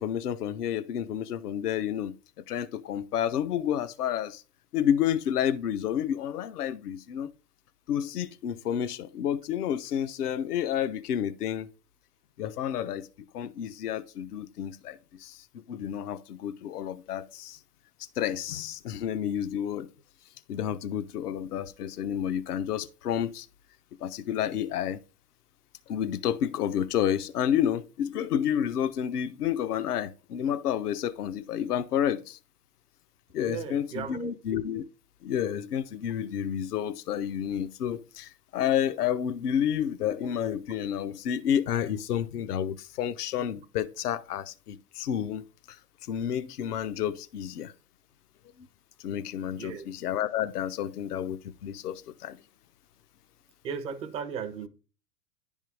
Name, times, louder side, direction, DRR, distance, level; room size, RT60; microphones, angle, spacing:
voice 1, 0.0-2.1 2.5-4.4 4.7-7.3 7.9-11.7 12.4-13.1 13.3-17.6 18.2-19.9 20.5-23.5 24.0-25.0 25.9-32.4 33.3-34.8 35.2-45.8 46.1-47.7 49.0-52.4, left 9 dB, 70° left, 0.7 m, -30 dB
voice 2, 33.4-34.3 49.6-49.9 53.6-54.7, right 7 dB, 15° right, 0.4 m, -36 dB
10.5 x 3.7 x 4.6 m
figure-of-eight pair, 95°, 48 cm